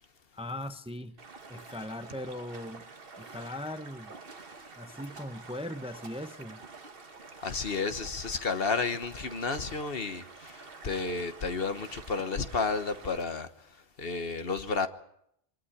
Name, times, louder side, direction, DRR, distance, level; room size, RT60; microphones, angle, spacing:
voice 1, 0.3-1.2 1.5-2.8 3.2-4.1 4.8-6.6, left 1 dB, 5° right, 0.7 m, -39 dB
Stream, 1.2-13.2, right 4 dB, 65° right, 1.6 m, -48 dB
voice 2, 7.4-14.9, left 4 dB, 65° left, 1.5 m, -32 dB
24.5 x 13.0 x 10.0 m
omnidirectional pair, 1.0 m